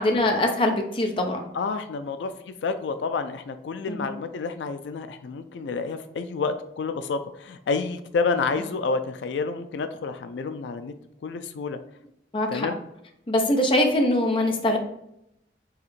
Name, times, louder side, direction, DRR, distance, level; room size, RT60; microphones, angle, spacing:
voice 1, 0.0-1.4 3.9-4.1 12.3-12.7 13.3-14.8, left 1 dB, 30° left, 3 dB, 0.6 m, -23 dB
voice 2, 1.5-10.9 11.2-11.8 12.5-12.8, left 4 dB, 85° left, 9 dB, 0.4 m, -29 dB
4.7 x 3.2 x 3.1 m, 0.78 s
head